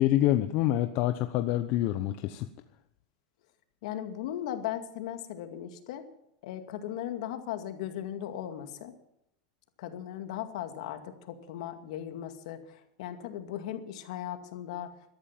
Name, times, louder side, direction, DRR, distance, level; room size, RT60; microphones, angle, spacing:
voice 1, 0.0-2.5, left 13 dB, 50° left, 9 dB, 0.9 m, -26 dB
voice 2, 3.8-6.1 6.4-8.9 9.8-14.9, left 11 dB, 70° left, 7 dB, 2.2 m, -37 dB
13.5 x 13.0 x 7.5 m, 0.75 s
supercardioid pair, 125°, 4 cm